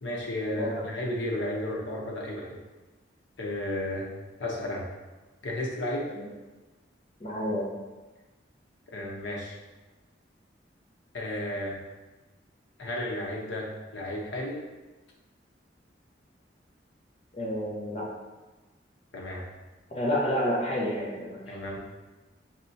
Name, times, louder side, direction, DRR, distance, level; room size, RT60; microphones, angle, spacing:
voice 1, 0.0-2.6 3.4-4.1 4.4-4.9 5.4-6.1 8.9-9.6 11.1-11.8 12.8-14.6 19.1-19.5 21.5-21.8, left 1 dB, 80° left, -2 dB, 0.8 m, -33 dB
voice 2, 7.2-7.7 17.3-18.1 19.9-21.4, equal, 35° left, -4 dB, 0.8 m, -29 dB
4.3 x 3.3 x 2.7 m, 1.2 s
head